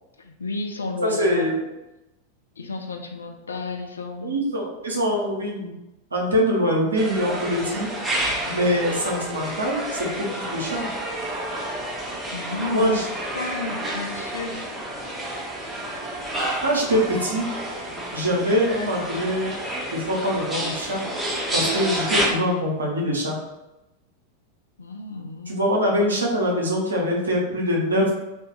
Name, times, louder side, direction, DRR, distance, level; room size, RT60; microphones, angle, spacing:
voice 1, 0.2-1.5 2.6-4.5 12.3-13.1 13.3-14.7 24.8-25.7, left 3 dB, 70° left, 4 dB, 0.3 m, -32 dB
voice 2, 1.0-1.6 4.2-5.7 6.1-7.9 8.5-10.9 12.7-13.1 16.6-17.5 18.1-19.5 19.9-21.0 21.5-23.4 25.5-28.1, equal, 75° right, -2 dB, 0.7 m, -23 dB
sound 1, 7.0-22.3, right 1 dB, 10° right, 0.5 m, -30 dB
2.3 x 2.0 x 3.0 m, 0.97 s
figure-of-eight pair, 90°, 0 cm